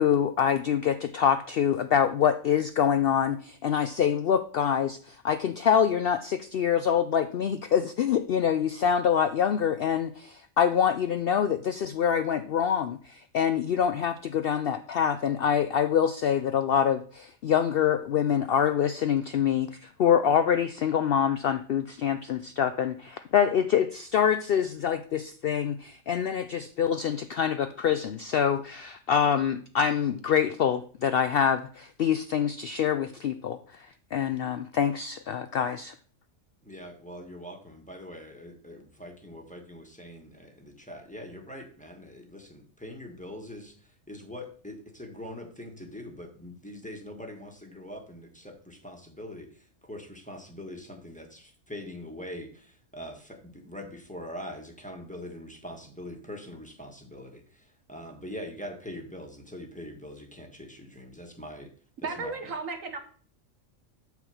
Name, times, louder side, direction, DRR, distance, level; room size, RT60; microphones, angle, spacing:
voice 1, 0.0-33.6 34.1-35.9, left 8 dB, 65° left, 10 dB, 0.6 m, -25 dB
voice 2, 36.6-43.7 44.1-61.7 62.0-62.3, left 1 dB, 5° left, 2 dB, 1.4 m, -43 dB
voice 3, 62.0-63.0, right 4 dB, 70° right, 6 dB, 1.6 m, -34 dB
8.2 x 4.5 x 6.9 m, 0.43 s
omnidirectional pair, 1.4 m